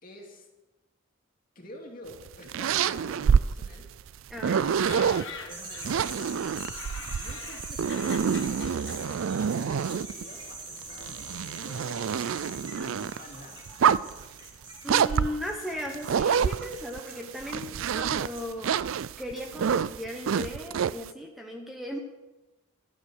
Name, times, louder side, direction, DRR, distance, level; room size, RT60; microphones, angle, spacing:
voice 1, 0.0-0.5 1.5-3.9 4.5-6.4 7.0-12.2 12.7-13.7, left 1 dB, 40° left, 0 dB, 2.6 m, -48 dB
sound 1, 2.1-5.2 5.8-10.2 10.8-13.2 13.7-14.2 14.9-17.0 17.4-21.1, right 7 dB, 70° right, 0.4 m, -27 dB
voice 2, 4.3-5.0 14.8-18.7 19.2-22.0, equal, ahead, 1 dB, 0.9 m, -37 dB
sound 2, 4.6-6.1 6.5-10.4 10.7-11.6 12.2-12.7 13.0-13.1 13.3-15.7 15.9-16.1, left 6 dB, 60° left, 1.4 m, -45 dB
sound 3, 5.5-18.4, right 2 dB, 20° right, 2.3 m, -43 dB
12.0 x 9.7 x 6.3 m, 1.1 s
head